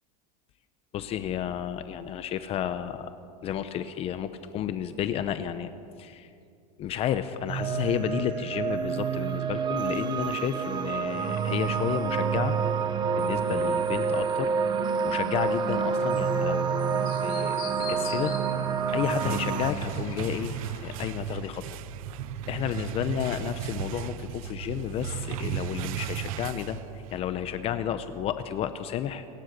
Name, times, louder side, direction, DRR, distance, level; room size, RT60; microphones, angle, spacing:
voice 1, 0.9-3.1 3.4-5.7 6.0-6.3 6.8-12.6 13.2-14.5 15.0-17.6 17.9-18.3 18.9-20.6 20.8-21.8 22.5-29.3, left 10 dB, 30° left, 11 dB, 0.8 m, -31 dB
sound 1, 7.5-19.7, right 6 dB, 25° right, 1.1 m, -28 dB
Chirp tweet, 15.5-21.0, left 8 dB, 90° left, 4.1 m, -45 dB
sound 2, 18.6-27.3, right 11 dB, 75° right, 0.9 m, -36 dB
28.5 x 16.5 x 6.7 m, 2.5 s
supercardioid pair, 150°, 18 cm